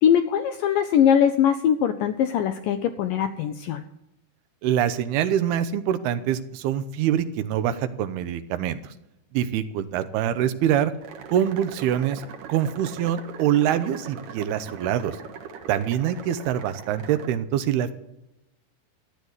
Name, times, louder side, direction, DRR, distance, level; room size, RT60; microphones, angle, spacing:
voice 1, 0.0-3.8, left 9 dB, 80° left, 9 dB, 2.0 m, -21 dB
voice 2, 4.6-8.9 9.3-10.9 11.3-12.2 12.5-15.2 15.7-17.9, right 10 dB, 80° right, 11 dB, 2.8 m, -24 dB
sound 1, 11.0-17.3, right 6 dB, 65° right, 2.7 m, -41 dB
14.0 x 10.5 x 8.0 m, 0.88 s
omnidirectional pair, 4.6 m